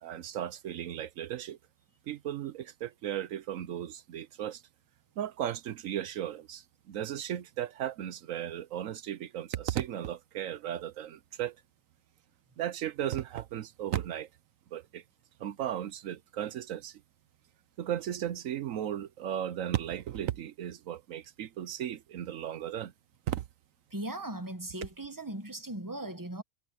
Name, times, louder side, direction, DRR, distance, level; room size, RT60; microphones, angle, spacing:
voice 1, 0.0-1.6 2.1-4.6 5.2-11.6 12.6-14.3 14.7-15.0 15.4-17.0 17.8-22.9 23.3-23.4, right 11 dB, 75° right, 1.1 m, -35 dB
voice 2, 23.9-26.4, right 1 dB, 15° right, 1.3 m, -38 dB
omnidirectional pair, 1.4 m